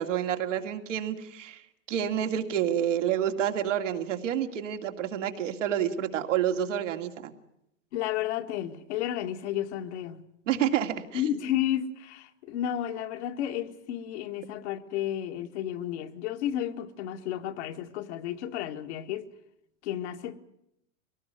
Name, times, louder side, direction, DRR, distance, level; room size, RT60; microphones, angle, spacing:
voice 1, 0.0-1.6 1.9-7.3 10.5-11.2, right 10 dB, 70° right, 2.6 m, -29 dB
voice 2, 7.9-10.2 11.1-19.3 19.8-20.4, left 11 dB, 60° left, 1.9 m, -32 dB
23.0 x 18.5 x 9.4 m
hypercardioid pair, 110°, 38 cm